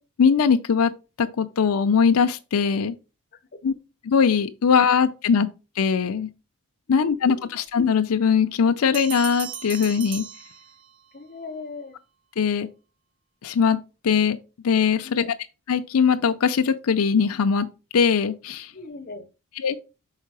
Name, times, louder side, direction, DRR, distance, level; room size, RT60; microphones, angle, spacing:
voice 1, 0.2-0.9 1.2-2.9 3.6-3.7 4.0-5.5 5.8-6.3 6.9-10.3 12.4-12.7 13.4-13.8 14.0-14.4 14.6-15.3 15.7-17.7 17.9-18.7 19.6-19.8, left 6 dB, 90° left, 0.5 m, -21 dB
voice 2, 7.0-7.6 11.1-12.0 15.0-15.3 18.7-19.3, left 3 dB, 45° left, 0.8 m, -39 dB
Bell, 8.9-11.2, right 9 dB, 60° right, 0.7 m, -37 dB
5.6 x 4.4 x 4.7 m
head